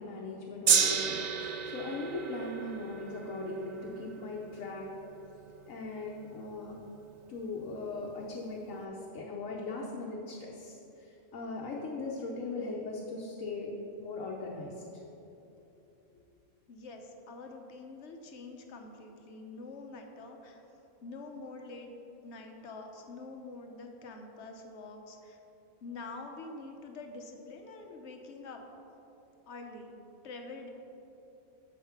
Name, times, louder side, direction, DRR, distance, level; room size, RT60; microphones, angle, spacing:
voice 1, 0.0-4.9 5.7-6.7 7.3-13.7 14.0-14.7, left 3 dB, 85° left, -3 dB, 1.2 m, -39 dB
Gong, 0.7-7.0 7.8-7.9, right 7 dB, 75° right, 0.4 m, -33 dB
voice 2, 16.7-20.6 21.0-21.9 22.2-25.4 25.8-28.6 29.5-30.0 30.2-30.7, left 3 dB, 60° left, 4 dB, 1.1 m, -46 dB
7.1 x 5.6 x 5.8 m, 3.0 s
omnidirectional pair, 1.3 m